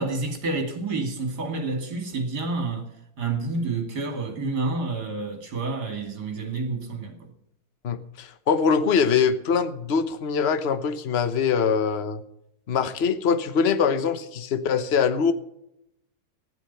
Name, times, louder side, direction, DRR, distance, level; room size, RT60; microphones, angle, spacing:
voice 1, 0.0-2.9 3.2-7.3, right 3 dB, 50° right, 2.9 m, -29 dB
voice 2, 7.8-12.2 12.7-15.3, left 6 dB, 45° left, 0.9 m, -23 dB
15.0 x 11.0 x 5.6 m
omnidirectional pair, 2.3 m